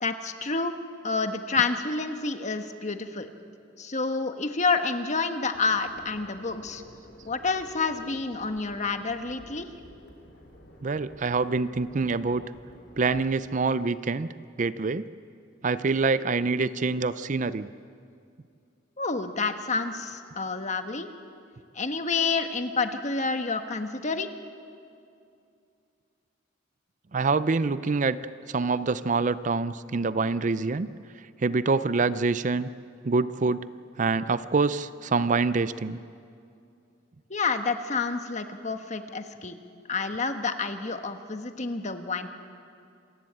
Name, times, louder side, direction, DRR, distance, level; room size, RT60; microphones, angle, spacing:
voice 1, 0.0-0.7 1.0-3.3 3.8-6.8 7.2-9.7 19.0-21.1 21.7-24.3 37.3-39.6 39.9-42.3, left 4 dB, 40° left, 7 dB, 1.3 m, -29 dB
sound 1, 5.5-13.2, equal, 60° left, 3.6 m, -52 dB
voice 2, 10.8-12.4 13.0-14.3 14.6-15.1 15.6-17.7 27.1-28.2 28.5-30.9 31.4-32.7 33.0-33.7 34.0-36.0, right 4 dB, 40° right, 15 dB, 0.5 m, -25 dB
27.0 x 15.5 x 8.7 m, 2.4 s
head